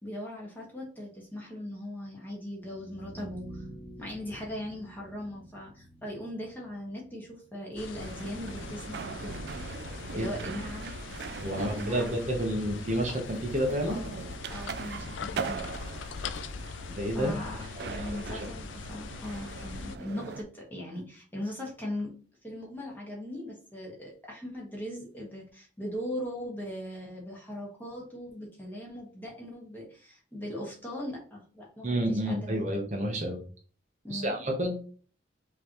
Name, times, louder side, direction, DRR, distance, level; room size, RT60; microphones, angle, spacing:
voice 1, 0.0-3.6 4.0-9.4 10.1-10.9 11.5-12.2 13.9-14.2 14.5-15.7 17.1-22.1 22.4-32.7 34.0-34.4, left 1 dB, 10° left, -3 dB, 1.4 m, -39 dB
sound 1, 2.5-8.5, right 1 dB, 45° left, 2.1 m, -48 dB
sound 2, 7.8-20.0, left 5 dB, 90° left, 0.4 m, -41 dB
sound 3, 7.9-20.4, right 5 dB, 60° right, 0.3 m, -41 dB
voice 2, 11.4-14.0 16.9-17.4 17.8-18.4 31.8-33.4 34.1-34.9, equal, 40° right, 1 dB, 0.9 m, -30 dB
5.2 x 3.1 x 3.0 m, 0.40 s
head